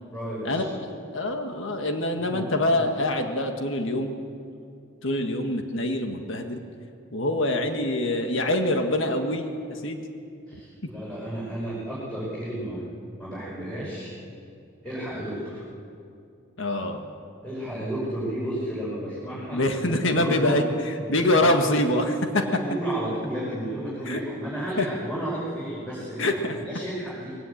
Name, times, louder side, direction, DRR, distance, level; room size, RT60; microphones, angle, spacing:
voice 1, 0.1-0.6 2.3-2.4 2.7-2.8 10.5-12.8 13.2-14.1 14.8-15.6 17.4-20.6 21.0-21.7 22.3-26.3 26.5-27.4, right 1 dB, 5° left, -9 dB, 5.6 m, -32 dB
voice 2, 1.1-4.1 5.0-6.6 7.1-10.0 16.6-17.0 19.5-20.6 21.1-22.4 24.1-24.2 24.8-24.9 26.2-26.5, left 1 dB, 60° left, 5 dB, 1.7 m, -25 dB
21.0 x 18.0 x 8.7 m, 2.5 s
head